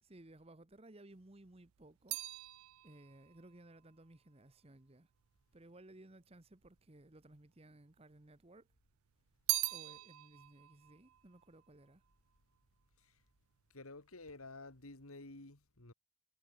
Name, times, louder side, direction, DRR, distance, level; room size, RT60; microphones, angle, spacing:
voice 1, 0.0-2.2 2.8-5.1 5.5-8.7 9.7-12.0, right 1 dB, 25° right, 1.0 m, -59 dB
sound 1, 1.1-5.6 6.3-7.1 7.4-8.6 8.9-12.4 12.7-13.2, right 22 dB, 75° right, 0.3 m, -43 dB
voice 2, 13.7-15.9, left 2 dB, 85° left, 2.7 m, -52 dB
head